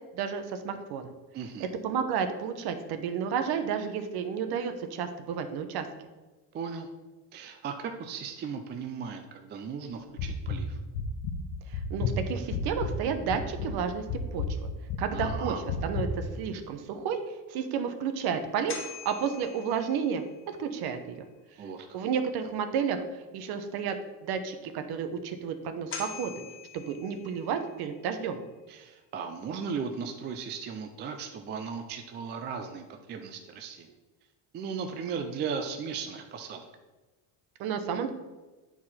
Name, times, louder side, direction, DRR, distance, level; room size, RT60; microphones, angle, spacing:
voice 1, 0.1-1.1 1.6-5.9 11.7-14.0 14.3-14.7 15.0-15.5 15.8-17.2 17.5-21.2 21.9-24.0 24.2-26.4 26.7-28.4 37.6-38.1, right 7 dB, 60° right, 8 dB, 0.9 m, -31 dB
voice 2, 1.3-1.7 6.5-6.9 7.3-10.8 15.1-15.6 21.6-21.9 28.7-33.9 34.5-36.7, right 6 dB, 25° right, 5 dB, 0.3 m, -36 dB
sound 1, 10.2-10.6 10.9-11.3 11.7-13.0 13.3-13.7 14.1-14.5 14.9-15.3 15.7-16.1, left 7 dB, 70° left, 1.1 m, -31 dB
sound 2, 18.5-20.6 25.5-25.6 25.9-27.8, left 5 dB, 30° left, 1.0 m, -43 dB
9.5 x 4.6 x 4.2 m, 1.2 s
cardioid pair, 165°, 44 cm